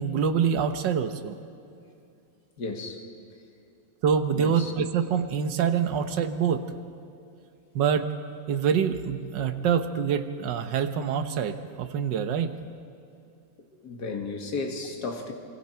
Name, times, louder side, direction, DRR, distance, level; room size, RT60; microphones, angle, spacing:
voice 1, 0.0-1.4 4.0-6.6 7.7-8.1 8.5-12.5, right 7 dB, 65° right, 8 dB, 1.6 m, -25 dB
voice 2, 2.6-3.1 4.3-4.7 13.8-15.3, left 3 dB, 55° left, 3 dB, 2.3 m, -33 dB
26.0 x 25.0 x 4.5 m, 2.5 s
omnidirectional pair, 2.2 m